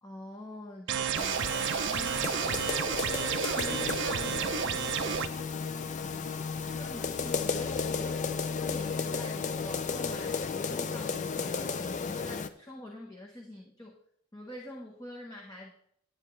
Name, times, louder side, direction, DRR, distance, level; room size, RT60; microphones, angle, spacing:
voice 1, 0.0-2.9 3.2-5.5 6.6-8.2 8.6-14.0 14.3-15.7, left 1 dB, 15° left, -1 dB, 1.0 m, -45 dB
sound 1, 0.9-5.3, right 8 dB, 55° right, 0.4 m, -31 dB
sound 2, 1.1-12.5, left 5 dB, 35° left, 0.4 m, -34 dB
10.0 x 8.9 x 3.2 m, 0.70 s
head